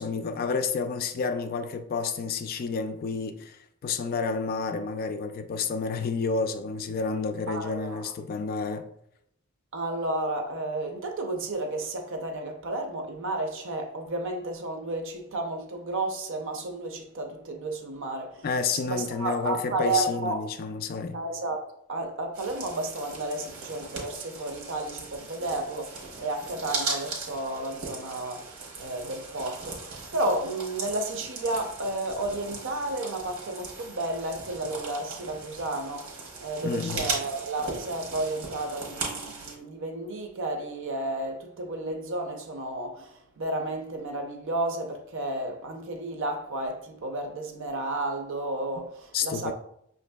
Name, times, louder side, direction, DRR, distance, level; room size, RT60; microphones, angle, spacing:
voice 1, 0.0-8.9 18.4-21.2 36.6-37.1 49.1-49.5, left 4 dB, 45° left, 0.3 m, -30 dB
voice 2, 7.5-8.1 9.7-18.5 18.7-20.4 21.1-49.5, right 2 dB, 60° right, 0.6 m, -32 dB
sound 1, 22.3-39.5, right 3 dB, 85° right, 1.0 m, -38 dB
5.7 x 2.6 x 2.2 m
head